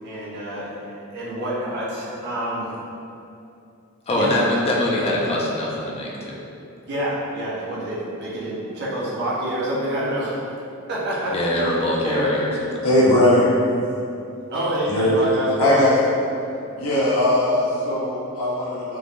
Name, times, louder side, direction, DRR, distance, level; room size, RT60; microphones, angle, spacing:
voice 1, 0.0-2.8 4.1-4.5 6.8-10.4 10.9-12.6 14.5-15.9, right 1 dB, 50° right, -7 dB, 0.6 m, -27 dB
voice 2, 4.1-6.4 11.3-12.9, left 1 dB, 25° left, -3 dB, 0.3 m, -23 dB
voice 3, 12.8-13.5 14.9-15.1 15.6-15.9 16.7-19.0, left 1 dB, 80° left, -8 dB, 0.6 m, -19 dB
3.3 x 2.1 x 2.4 m, 2.7 s
head